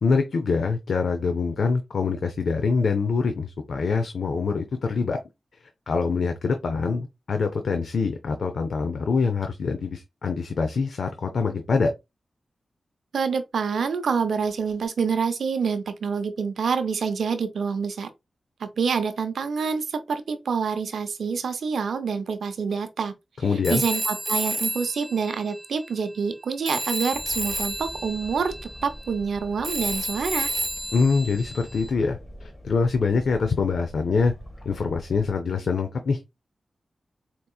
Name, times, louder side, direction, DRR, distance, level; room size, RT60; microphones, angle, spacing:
voice 1, 0.0-5.2 5.9-11.9 23.4-23.8 30.9-34.3 34.6-36.2, left 4 dB, 80° left, 0.5 m, -24 dB
voice 2, 13.1-18.1 18.6-23.1 23.7-30.5, right 5 dB, 85° right, 0.6 m, -27 dB
Telephone, 23.6-26.4 26.7-31.9, right 1 dB, 25° right, 0.4 m, -31 dB
sound 1, 27.1-35.3, equal, 35° left, 1.5 m, -43 dB
4.6 x 2.9 x 2.3 m
cardioid pair, 50°, 0 cm